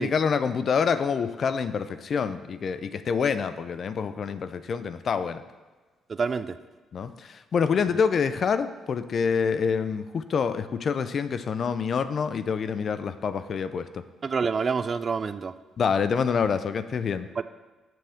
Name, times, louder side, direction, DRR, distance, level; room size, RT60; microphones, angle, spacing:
voice 1, 0.0-5.4 6.9-14.0 15.8-17.3, left 6 dB, 50° left, 12 dB, 0.4 m, -26 dB
voice 2, 6.1-6.6 14.2-15.5 17.4-17.5, right 5 dB, 40° right, 13 dB, 0.3 m, -27 dB
7.6 x 3.5 x 6.4 m, 1.3 s
cardioid pair, 90°, 0 cm